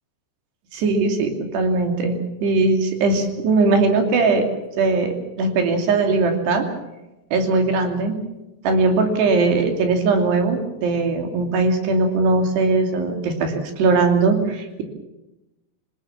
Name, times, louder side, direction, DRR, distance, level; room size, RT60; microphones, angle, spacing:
voice 1, 0.7-4.5 4.8-6.7 7.3-8.2 8.6-14.8, right 3 dB, 70° right, 4 dB, 4.8 m, -20 dB
27.0 x 17.5 x 7.2 m, 0.99 s
omnidirectional pair, 5.1 m